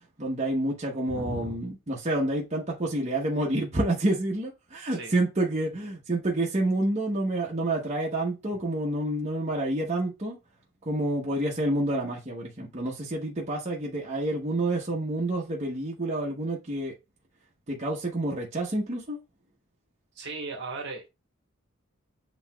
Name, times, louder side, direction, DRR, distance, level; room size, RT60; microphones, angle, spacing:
voice 1, 0.2-10.4 10.9-16.9 17.7-19.2, right 1 dB, 30° right, 0.9 m, -28 dB
voice 2, 1.1-1.6 4.9-5.1 20.1-21.1, right 2 dB, 50° right, 1.3 m, -36 dB
7.9 x 2.9 x 2.3 m
head